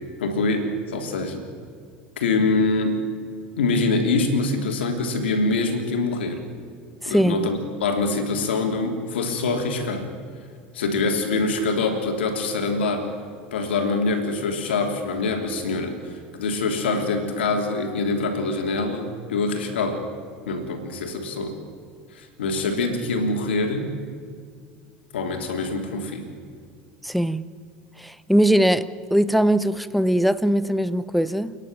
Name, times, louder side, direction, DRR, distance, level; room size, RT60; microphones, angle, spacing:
voice 1, 0.2-1.4 2.2-3.0 3.6-6.4 7.0-10.0 10.7-13.1 13.5-20.0 20.5-21.5 22.1-23.9 25.1-26.3, left 3 dB, 85° left, 3.3 m, -24 dB
voice 2, 7.0-7.5 27.0-27.4 28.0-31.6, equal, ahead, 0.8 m, -21 dB
29.0 x 11.0 x 8.9 m
hypercardioid pair, 85°, 6 cm